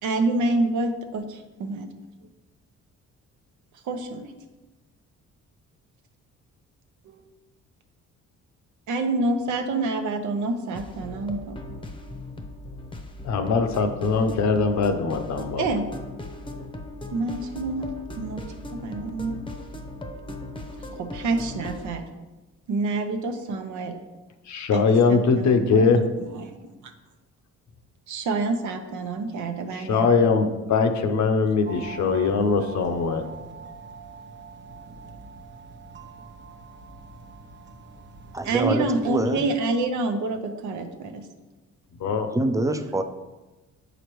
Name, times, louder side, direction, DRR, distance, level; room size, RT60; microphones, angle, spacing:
voice 1, 0.0-1.9 3.8-4.3 7.0-7.2 8.9-11.6 15.6-15.9 17.1-17.9 18.1-18.4 18.8-19.4 20.9-22.0 22.7-23.9 24.7-26.5 26.8-26.9 28.1-30.1 38.4-41.3, right 2 dB, 75° right, 6 dB, 0.9 m, -27 dB
sound 1, 10.7-21.9, left 1 dB, 15° left, 0.8 m, -38 dB
voice 2, 13.2-15.6 24.5-26.0 29.9-33.2 42.0-42.3, left 4 dB, 65° left, 7 dB, 0.7 m, -21 dB
sound 2, 31.7-39.4, right 5 dB, 35° right, 0.8 m, -43 dB
voice 3, 38.3-39.4 42.3-43.0, right 1 dB, 10° right, 8 dB, 0.5 m, -25 dB
7.9 x 5.0 x 3.1 m, 1.1 s
cardioid pair, 90°, 30 cm